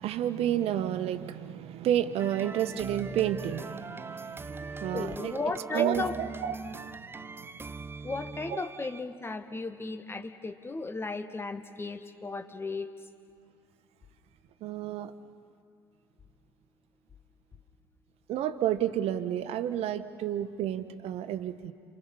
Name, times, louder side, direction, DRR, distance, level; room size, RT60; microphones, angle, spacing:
voice 1, 0.0-5.4 5.7-7.5 8.5-8.6 14.6-15.1 18.3-21.7, right 11 dB, 50° right, 11 dB, 1.4 m, -31 dB
sound 1, 2.2-9.1, right 4 dB, 15° right, 0.8 m, -41 dB
voice 2, 4.9-6.1 8.0-12.9, left 3 dB, 15° left, 7 dB, 1.4 m, -35 dB
29.0 x 28.5 x 5.7 m, 2.4 s
figure-of-eight pair, 65°, 13 cm